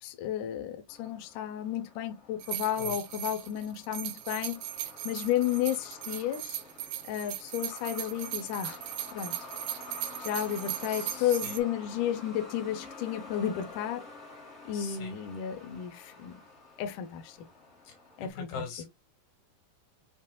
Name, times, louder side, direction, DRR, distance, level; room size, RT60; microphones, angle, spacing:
voice 1, 0.0-6.6 7.0-8.8 9.1-9.3 10.2-14.1 14.7-16.4 16.8-17.4 18.2-18.6, left 10 dB, 70° left, 2.1 m, -32 dB
Truck, 0.9-18.3, left 2 dB, 30° left, 1.3 m, -49 dB
sound 1, 2.4-11.6, right 13 dB, 80° right, 2.3 m, -38 dB
voice 2, 10.9-11.6 14.7-15.1 17.9-18.9, left 5 dB, 85° left, 3.9 m, -42 dB
7.5 x 2.7 x 2.3 m
omnidirectional pair, 4.3 m